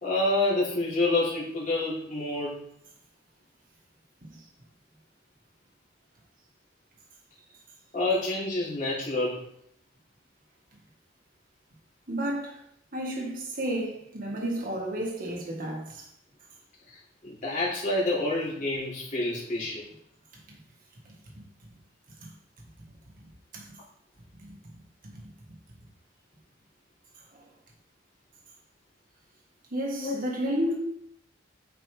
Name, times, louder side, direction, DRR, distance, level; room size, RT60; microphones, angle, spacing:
voice 1, 0.0-2.6 7.9-9.4 17.2-19.8 30.0-30.2, left 2 dB, 45° left, 3.3 m, -28 dB
voice 2, 12.1-12.6 12.9-16.1 20.5-20.6 21.1-21.2 22.2-22.3 23.5-23.8 24.4-24.6 25.0-25.2 27.3-27.4 29.7-30.7, right 1 dB, 45° right, 1.7 m, -32 dB
8.9 x 5.1 x 3.4 m
head